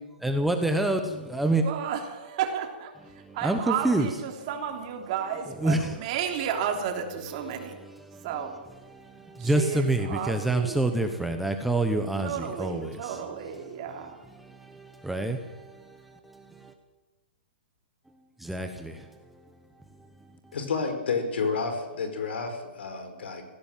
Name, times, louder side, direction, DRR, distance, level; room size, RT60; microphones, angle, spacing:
voice 1, 0.2-1.6 3.1-4.1 5.6-6.0 7.8-8.3 8.9-13.3 13.6-13.7 14.0-16.7 18.4-19.2, right 2 dB, ahead, 0.9 m, -28 dB
voice 2, 1.5-2.9 3.3-7.8 8.2-8.5 9.4-10.9 12.2-14.2, right 8 dB, 35° right, 3.2 m, -32 dB
voice 3, 20.5-23.4, left 4 dB, 80° left, 5.2 m, -30 dB
19.5 x 16.0 x 9.1 m
hypercardioid pair, 170°, 6 cm